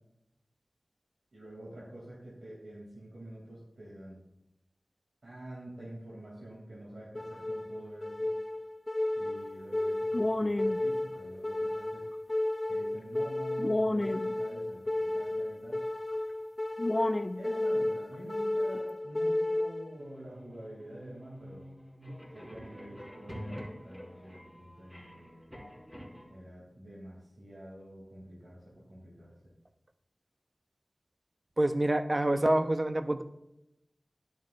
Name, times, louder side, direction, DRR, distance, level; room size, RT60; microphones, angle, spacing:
voice 1, 1.3-4.2 5.2-8.3 9.1-12.0 12.7-15.8 17.3-21.6 22.3-25.6 26.3-29.4, right 1 dB, 70° right, -6 dB, 3.0 m, -47 dB
sound 1, 7.1-20.1, left 1 dB, 40° left, 0.5 m, -32 dB
sound 2, 20.0-26.3, equal, 5° right, 3.8 m, -47 dB
voice 2, 31.6-33.2, right 1 dB, 40° right, 9 dB, 0.8 m, -27 dB
12.0 x 10.0 x 2.6 m, 0.87 s
wide cardioid pair, 40°, 0 cm